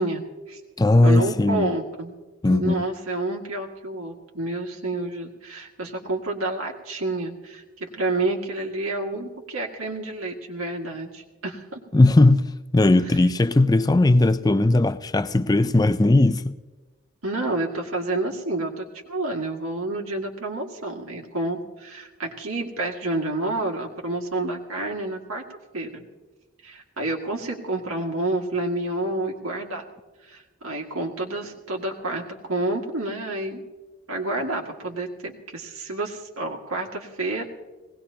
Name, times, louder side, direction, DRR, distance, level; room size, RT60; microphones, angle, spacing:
voice 1, 0.0-0.6 1.0-2.1 2.5-11.8 13.1-13.2 17.2-25.4 25.7-26.0 26.6-29.8 30.3-33.6 34.1-37.5, right 2 dB, 85° right, 2.0 m, -29 dB
voice 2, 0.8-1.7 2.4-2.9 11.9-16.5, left 2 dB, 20° left, 0.4 m, -18 dB
20.5 x 18.5 x 2.9 m
head